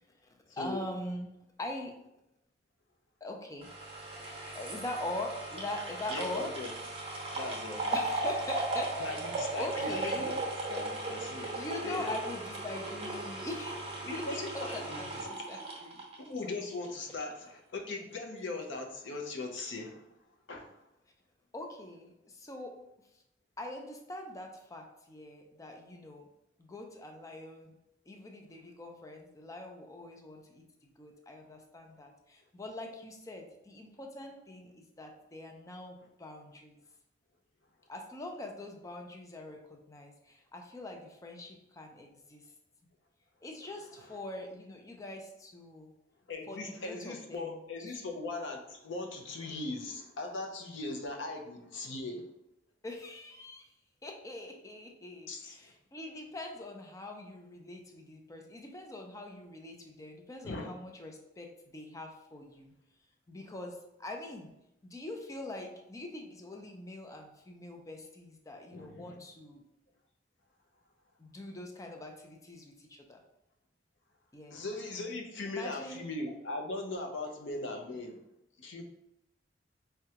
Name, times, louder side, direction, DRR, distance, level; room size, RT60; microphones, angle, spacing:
voice 1, 0.2-1.3 1.6-2.0 3.2-3.7 4.5-6.5 7.9-9.2 9.6-10.4 11.6-16.0 21.5-22.8 23.6-26.3 26.6-27.7 28.1-36.8 37.9-42.4 43.4-45.9 46.5-48.0 52.8-53.7 54.0-62.7 63.3-64.5 64.8-69.6 71.2-73.2 74.3-74.6 75.4-76.0, left 1 dB, 20° left, 2 dB, 0.4 m, -43 dB
sound 1, 3.6-16.9 17.2-17.3, right 2 dB, 30° right, 0.8 m, -37 dB
voice 2, 6.1-6.7 7.3-7.9 9.0-10.4 10.7-12.1 14.0-15.0 16.3-20.0 20.5-20.7 44.0-44.1 46.3-52.2 55.3-55.7 60.4-60.7 68.7-69.2 74.5-78.2 78.6-78.8, left 2 dB, 80° left, 3 dB, 0.6 m, -39 dB
4.7 x 2.2 x 2.8 m, 0.85 s
head